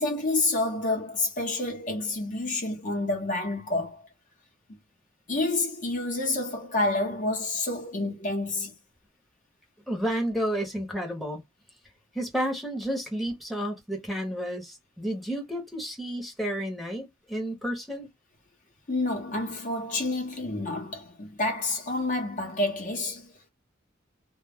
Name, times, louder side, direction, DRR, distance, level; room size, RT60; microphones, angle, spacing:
voice 1, 0.0-4.0 5.3-8.7 18.9-23.3, left 2 dB, 40° left, 0.8 m, -28 dB
voice 2, 9.9-11.4 12.1-18.1, equal, ahead, 0.8 m, -31 dB
2.2 x 2.0 x 3.4 m
head